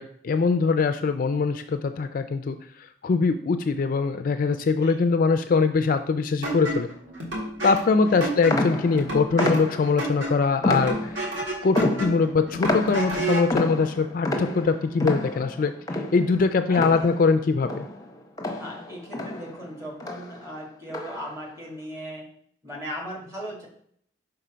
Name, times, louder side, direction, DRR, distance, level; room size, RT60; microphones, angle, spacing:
voice 1, 0.0-2.6 3.0-6.9 7.6-11.2 11.6-15.7 16.1-17.9, left 4 dB, 45° left, 9 dB, 0.3 m, -22 dB
sound 1, 6.4-13.6, right 2 dB, 70° right, 2.0 m, -31 dB
voice 2, 7.9-8.2 16.7-17.0 18.6-22.2 22.6-23.7, equal, 15° right, -3 dB, 1.8 m, -38 dB
sound 2, 8.5-10.1 10.6-11.4 11.7-17.4 17.6-19.7 20.0-20.4 20.9-21.4, left 2 dB, 20° left, 0.7 m, -29 dB
5.6 x 3.9 x 5.0 m, 0.63 s
head